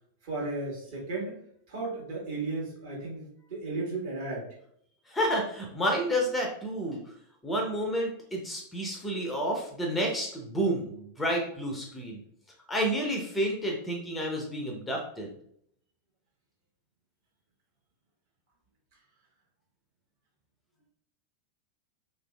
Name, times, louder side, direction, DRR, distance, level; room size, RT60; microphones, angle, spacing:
voice 1, 0.2-1.4 1.7-4.5, right 3 dB, 55° right, -5 dB, 1.2 m, -34 dB
voice 2, 5.1-7.0 7.4-12.2 12.7-15.3, equal, 10° left, 0 dB, 0.5 m, -30 dB
3.0 x 2.5 x 2.2 m, 0.67 s
figure-of-eight pair, 90°, 0 cm